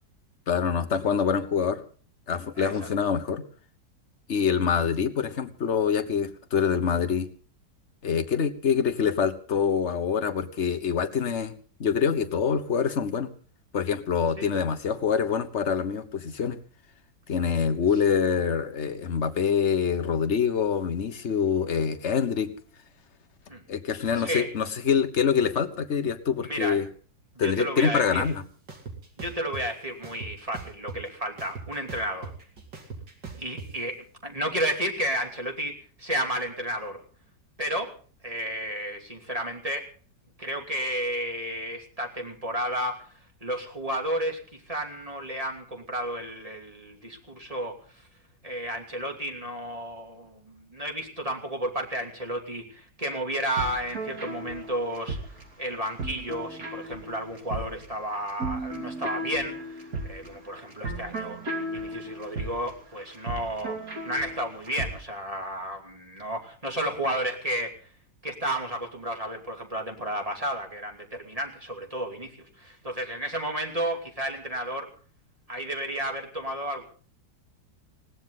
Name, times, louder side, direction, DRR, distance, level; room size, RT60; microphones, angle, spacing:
voice 1, 0.5-1.8 2.3-3.4 4.3-7.3 8.0-11.5 11.8-13.3 13.7-16.6 17.3-22.5 23.7-26.9 27.4-28.4, left 6 dB, 45° left, 9 dB, 1.4 m, -25 dB
voice 2, 2.6-2.9 14.4-14.5 23.5-23.6 24.2-24.5 26.4-26.8 27.3-28.3 29.2-32.3 33.4-34.0 34.2-37.0 37.6-37.9 38.2-39.9 40.4-43.1 43.4-44.4 44.7-47.7 48.4-55.2 55.6-63.8 64.0-67.7 68.2-74.9 75.5-76.8, right 1 dB, 20° right, 2 dB, 2.8 m, -32 dB
sound 1, 28.2-28.3 28.7-29.6 30.0-31.1 31.4-33.7, right 4 dB, 80° right, 3.4 m, -39 dB
sound 2, 53.3-65.0, right 2 dB, 55° right, 3.1 m, -36 dB
20.0 x 17.0 x 3.9 m, 0.41 s
omnidirectional pair, 1.8 m